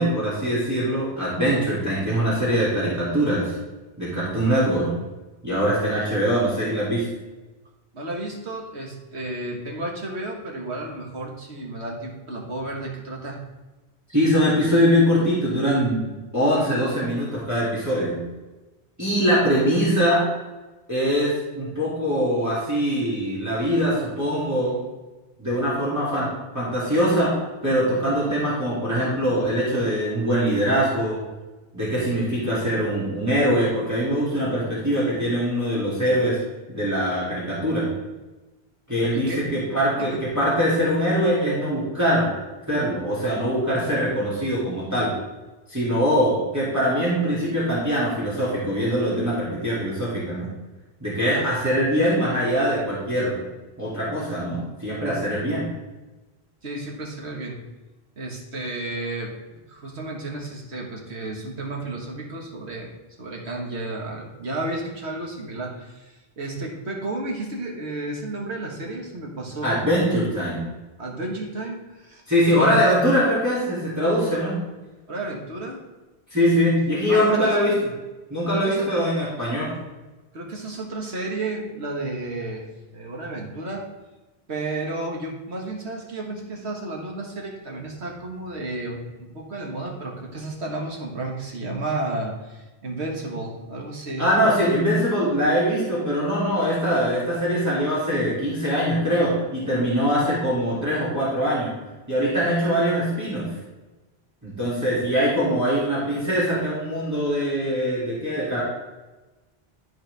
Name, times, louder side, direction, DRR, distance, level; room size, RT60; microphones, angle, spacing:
voice 1, 0.0-3.5 4.0-4.9 5.4-7.1 14.1-16.1 16.3-18.2 19.0-20.2 20.9-24.8 25.4-26.3 26.5-27.4 27.6-31.2 31.7-36.4 36.7-37.9 38.9-42.3 42.7-45.1 45.7-50.5 51.0-53.4 53.8-55.7 69.6-70.7 72.3-74.6 76.3-77.7 78.3-79.7 94.2-101.7 102.1-103.4 104.4-108.6, equal, 15° right, -9 dB, 2.5 m, -22 dB
voice 2, 7.9-13.4 39.1-39.4 40.0-40.1 56.6-57.6 58.2-62.9 63.2-70.1 71.0-72.2 72.5-72.7 75.1-75.8 76.7-76.8 77.0-77.6 78.5-78.9 80.3-83.8 84.5-94.3, right 2 dB, 85° right, -1 dB, 1.8 m, -32 dB
13.0 x 4.4 x 3.4 m, 1.1 s
omnidirectional pair, 1.1 m